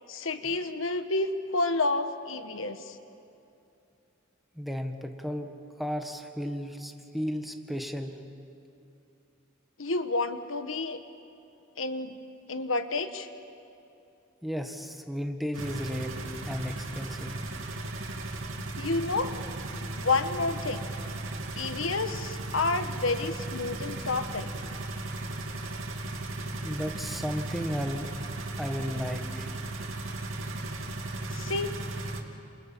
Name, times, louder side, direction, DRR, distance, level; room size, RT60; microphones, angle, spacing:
voice 1, 0.1-3.0 9.8-11.0 11.8-12.2 12.5-13.3 18.8-19.3 20.0-20.8 21.6-24.5 31.3-31.8, left 3 dB, 85° left, 9 dB, 1.4 m, -30 dB
voice 2, 4.5-5.5 5.8-8.2 14.4-16.1 16.4-17.4 26.6-28.1 28.6-29.5, equal, ahead, 4 dB, 1.6 m, -34 dB
sound 1, 15.5-32.2, right 2 dB, 90° right, 2.7 m, -36 dB
28.5 x 27.5 x 7.5 m, 2.7 s
head